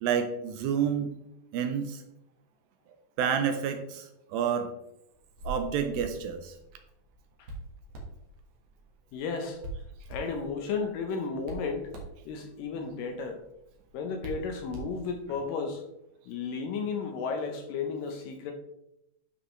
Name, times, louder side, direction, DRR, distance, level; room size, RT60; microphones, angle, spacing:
voice 1, 0.0-1.1 1.5-2.0 3.2-4.7 5.4-6.6, right 7 dB, 80° right, 7 dB, 2.3 m, -29 dB
Hands, 5.1-15.4, right 2 dB, 55° right, 2.1 m, -45 dB
voice 2, 9.1-9.6 10.1-11.9 12.3-13.4 13.9-15.8 16.3-18.5, left 5 dB, 75° left, 4 dB, 2.2 m, -33 dB
11.0 x 4.9 x 3.2 m, 0.84 s
omnidirectional pair, 4.4 m